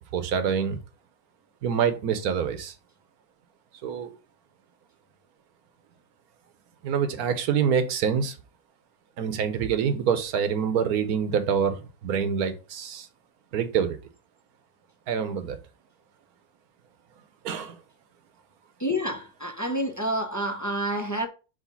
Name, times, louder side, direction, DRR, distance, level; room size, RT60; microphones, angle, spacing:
voice 1, 0.1-0.8 1.6-2.7 3.8-4.1 6.8-8.3 9.2-13.1 13.5-14.0 15.1-15.6 17.4-17.8, right 7 dB, 70° right, 1.3 m, -26 dB
voice 2, 18.8-21.3, equal, 20° left, 0.5 m, -28 dB
5.0 x 3.6 x 5.4 m
omnidirectional pair, 1.6 m